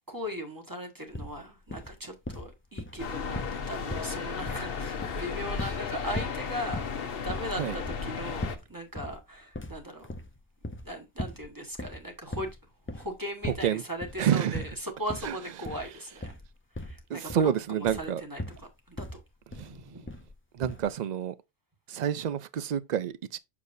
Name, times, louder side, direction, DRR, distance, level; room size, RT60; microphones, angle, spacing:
voice 1, 0.1-10.1 10.8-12.6 12.9-16.3 16.8-19.2 19.6-20.1, equal, 20° right, 1.4 m, -38 dB
sound 1, 1.1-1.4 1.7-2.0 2.3-3.6 3.9-4.7 5.0-5.9 6.2-6.4 6.7-7.0 7.3-8.7 9.0-9.2 9.5-10.9 11.2-11.5 11.7-12.6 12.9-13.2 13.4-13.7 14.0-14.3 14.5-14.8 15.1-15.3 15.6-15.9 16.2-16.5 16.8-17.5 17.9-18.1 18.4-18.7 19.0-19.2 19.5-19.8 20.1-20.3 20.6-20.9, left 1 dB, 20° left, 0.4 m, -39 dB
sound 2, 3.0-8.6, left 5 dB, 60° left, 1.0 m, -34 dB
voice 2, 14.2-14.6 15.2-15.3 17.1-18.2 19.5-19.7 20.5-21.3 21.9-23.4, right 9 dB, 55° right, 0.5 m, -28 dB
7.2 x 6.5 x 2.6 m
omnidirectional pair, 1.2 m